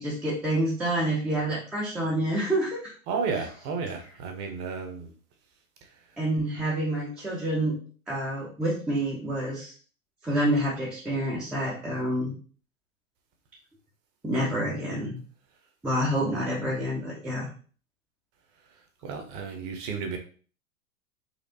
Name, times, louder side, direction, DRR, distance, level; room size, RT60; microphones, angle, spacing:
voice 1, 0.0-2.9 6.2-7.8 8.1-9.7 10.2-12.3 14.2-15.2 15.8-17.5, right 1 dB, 5° right, -5 dB, 0.4 m, -28 dB
voice 2, 3.1-5.1 19.0-20.2, right 5 dB, 35° right, 5 dB, 0.8 m, -32 dB
4.2 x 2.4 x 2.7 m, 0.41 s
figure-of-eight pair, 105°, 41 cm